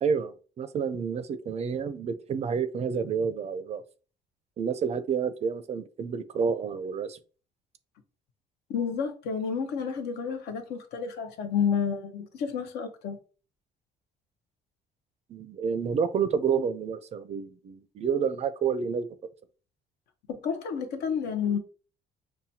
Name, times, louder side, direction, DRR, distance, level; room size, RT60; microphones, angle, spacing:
voice 1, 0.0-3.8 4.6-7.2 15.3-19.1, right 6 dB, 40° right, 0.4 m, -29 dB
voice 2, 8.7-13.2 20.3-21.6, left 7 dB, 80° left, 0.7 m, -30 dB
5.6 x 2.2 x 2.7 m
cardioid pair, 110°, 17 cm